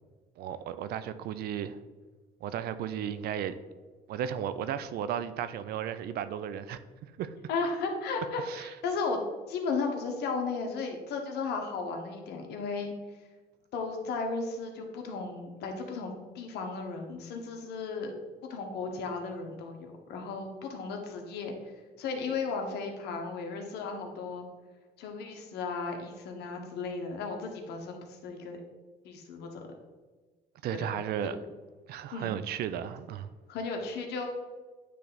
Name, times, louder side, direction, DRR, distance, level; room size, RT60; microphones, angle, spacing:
voice 1, 0.4-1.8 2.4-3.5 4.1-7.3 8.4-8.7 30.6-31.4 31.9-33.3, right 9 dB, 65° right, 12 dB, 0.5 m, -34 dB
voice 2, 7.5-9.2 9.5-12.9 13.7-18.1 18.5-21.6 22.0-24.5 25.0-28.6 29.0-29.6 30.7-30.9 32.1-32.3 33.5-34.3, left 4 dB, 75° left, 3 dB, 1.2 m, -35 dB
9.4 x 3.3 x 4.0 m, 1.3 s
cardioid pair, 110°, 17 cm